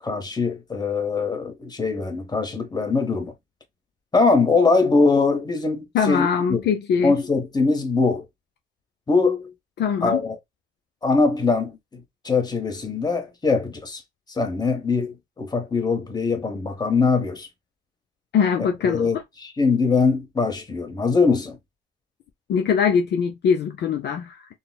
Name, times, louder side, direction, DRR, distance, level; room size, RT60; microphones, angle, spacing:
voice 1, 0.0-3.3 4.1-6.6 7.0-8.3 9.1-9.5 10.0-10.4 11.0-14.0 14.3-17.5 18.6-21.6, left 4 dB, 20° left, 0.9 m, -22 dB
voice 2, 5.9-7.1 9.8-10.2 18.3-19.2 22.5-24.5, left 7 dB, 60° left, 0.4 m, -22 dB
3.8 x 2.1 x 2.2 m
cardioid pair, 90°, 20 cm